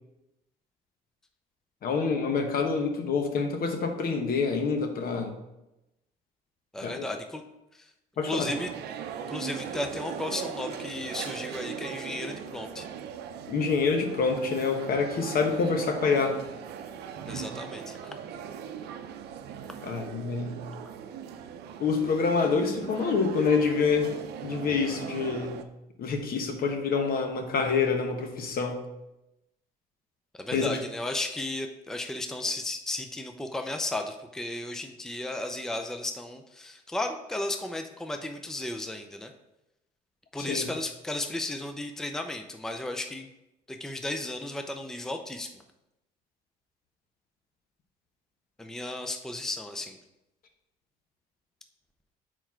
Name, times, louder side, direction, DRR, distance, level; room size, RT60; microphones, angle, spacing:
voice 1, 1.8-5.3 6.8-7.1 8.2-8.5 13.5-16.4 19.8-20.6 21.8-24.1 24.4-25.6 26.0-28.8 30.5-30.8 40.4-40.7, left 5 dB, 60° left, 5 dB, 1.1 m, -27 dB
voice 2, 6.7-7.4 7.7-7.9 8.3-8.7 9.3-12.9 17.3-18.1 30.4-39.3 40.3-43.3 43.7-45.5 48.6-50.0, left 2 dB, 5° left, 5 dB, 0.5 m, -34 dB
sound 1, 8.4-25.6, right 8 dB, 75° right, 0.6 m, -39 dB
4.5 x 4.5 x 5.7 m, 0.92 s
cardioid pair, 90°, 17 cm